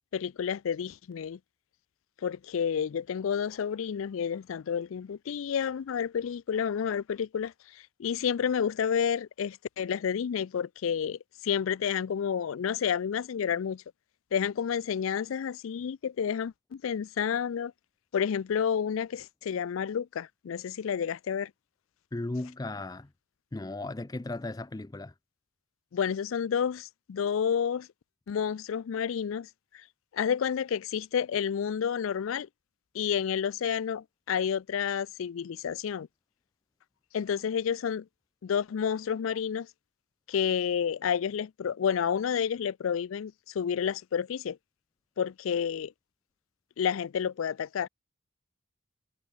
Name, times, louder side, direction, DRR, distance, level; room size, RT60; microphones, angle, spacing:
voice 1, 0.1-1.4 2.2-13.8 14.3-17.7 18.1-21.5 25.9-27.9 28.3-29.5 30.1-32.5 32.9-36.1 37.1-38.1 38.4-39.7 40.3-44.6 45.2-45.9 46.8-47.9, left 7 dB, 85° left, 0.4 m, -30 dB
voice 2, 22.1-23.1 23.5-25.1, left 2 dB, 20° left, 0.4 m, -36 dB
head